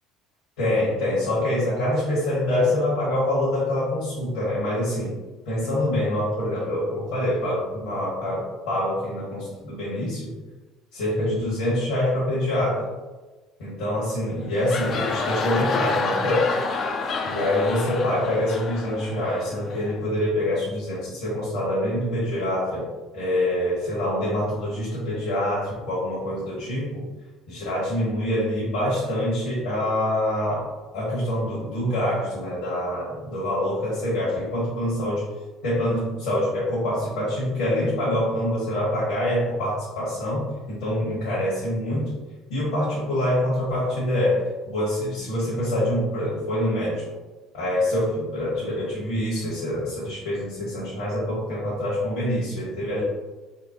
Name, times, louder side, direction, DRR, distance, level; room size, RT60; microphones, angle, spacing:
voice 1, 0.6-5.1 5.4-10.3 10.9-12.9 13.6-16.5 17.2-22.9 23.1-27.1 27.5-35.2 35.6-42.1 42.5-44.4 44.7-47.0 47.5-53.0, left 1 dB, 75° left, -9 dB, 1.3 m, -25 dB
sound 1, 14.4-20.0, left 4 dB, 50° left, 0.4 m, -29 dB
4.3 x 2.0 x 2.7 m, 1.2 s
hypercardioid pair, 70°, 0 cm